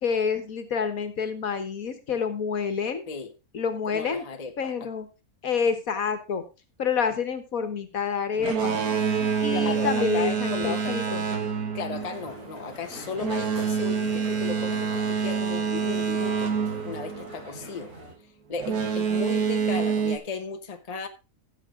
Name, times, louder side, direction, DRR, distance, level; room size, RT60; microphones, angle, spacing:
voice 1, 0.0-3.0 3.5-4.2 4.6-5.1 5.4-6.4 6.8-8.8 9.2-11.3 19.1-19.2, left 6 dB, 70° left, 1.8 m, -28 dB
voice 2, 3.8-4.9 9.5-11.0 11.7-16.5 16.8-17.9 18.5-21.1, left 5 dB, 30° left, 1.1 m, -35 dB
Boat Water vehicle, 8.3-17.8 18.6-20.2, right 6 dB, 80° right, 2.0 m, -27 dB
Crowd, 11.9-18.1, right 1 dB, 60° right, 5.4 m, -44 dB
15.0 x 7.4 x 3.8 m
omnidirectional pair, 1.6 m